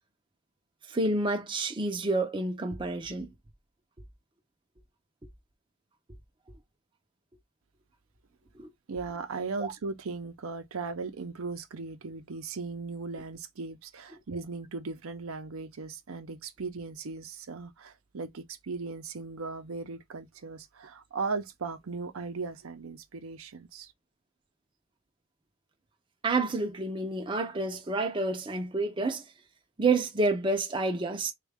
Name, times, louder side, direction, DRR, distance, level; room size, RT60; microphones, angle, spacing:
voice 1, 0.9-3.3 8.6-8.7 9.6-9.7 26.2-29.2 29.8-31.3, right 3 dB, 20° right, 0.5 m, -29 dB
voice 2, 8.9-23.9, right 4 dB, 80° right, 0.6 m, -37 dB
3.6 x 2.3 x 3.3 m
head